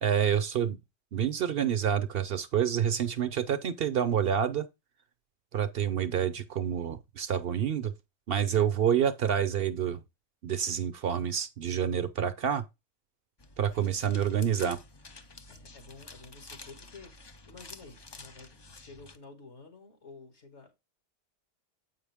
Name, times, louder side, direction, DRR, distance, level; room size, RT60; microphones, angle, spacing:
voice 1, 0.0-0.8 1.1-4.7 5.5-7.9 8.3-10.0 10.4-12.6 13.6-14.8, right 8 dB, 60° right, 0.8 m, -28 dB
sound 1, 13.4-19.2, left 3 dB, 30° left, 0.5 m, -50 dB
voice 2, 15.2-20.7, left 4 dB, 70° left, 2.4 m, -51 dB
7.9 x 5.7 x 3.5 m
omnidirectional pair, 1.2 m